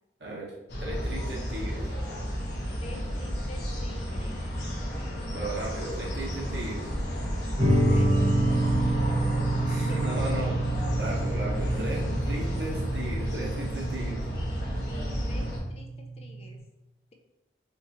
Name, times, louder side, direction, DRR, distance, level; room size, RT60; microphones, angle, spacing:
voice 1, 0.2-0.5 0.8-1.9 5.3-6.9 9.7-10.6 11.0-14.2, right 1 dB, 85° right, -3 dB, 1.2 m, -36 dB
sound 1, 0.7-15.6, equal, 75° left, 1.2 m, -32 dB
voice 2, 2.7-4.4 7.9-8.6 8.9-9.2 15.2-15.9 16.2-16.6, left 1 dB, 35° left, 3 dB, 0.5 m, -47 dB
sound 2, 7.6-16.6, right 1 dB, 35° right, 0.9 m, -28 dB
5.1 x 2.7 x 2.9 m, 0.96 s
head